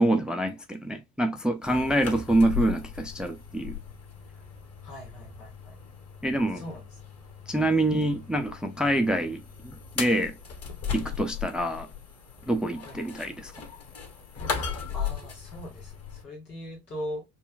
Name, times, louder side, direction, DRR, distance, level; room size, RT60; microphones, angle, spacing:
voice 1, 0.0-3.8 6.2-6.6 7.5-10.4 10.9-11.9 12.5-13.5, right 1 dB, ahead, 0.4 m, -26 dB
sound 1, 1.6-16.2, left 7 dB, 30° left, 1.2 m, -37 dB
voice 2, 4.8-5.7 6.5-6.9 7.5-7.7 12.8-13.2 14.9-17.2, equal, 90° left, 1.8 m, -40 dB
5.4 x 2.2 x 2.3 m
figure-of-eight pair, 65°, 46 cm